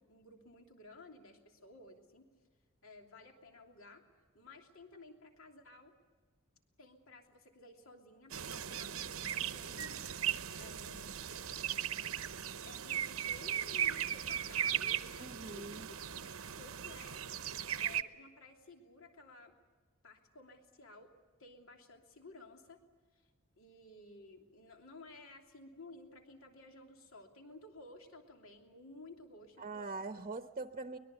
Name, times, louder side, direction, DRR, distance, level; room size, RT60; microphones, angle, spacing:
voice 1, 0.0-2.3 2.8-4.0 4.3-5.9 6.8-10.1 10.6-11.2 12.6-17.2 17.7-19.5 20.0-21.1 21.4-22.8 23.1-23.3 23.6-29.9, left 2 dB, 70° left, 3 dB, 3.1 m, -55 dB
sound 1, 8.3-18.0, right 9 dB, 75° right, 1.0 m, -38 dB
voice 2, 15.2-15.9 29.6-31.0, right 3 dB, 35° right, 8 dB, 0.9 m, -42 dB
23.5 x 21.0 x 8.2 m, 1.4 s
head